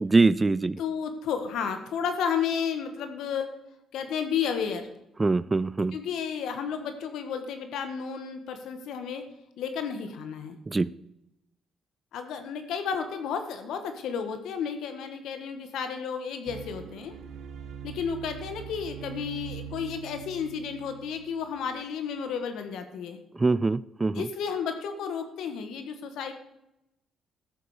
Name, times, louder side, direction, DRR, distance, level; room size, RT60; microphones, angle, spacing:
voice 1, 0.0-0.8 5.2-6.0 10.7-10.9 23.4-24.3, right 3 dB, 20° right, 19 dB, 0.3 m, -23 dB
voice 2, 0.8-3.5 3.9-4.9 5.9-9.3 9.6-10.6 12.1-17.2 17.8-23.2 24.1-26.3, left 7 dB, 80° left, 8 dB, 1.5 m, -32 dB
sound 1, 16.5-21.8, right 9 dB, 75° right, 1.2 m, -42 dB
13.0 x 7.0 x 5.0 m, 0.88 s
cardioid pair, 90°, 0 cm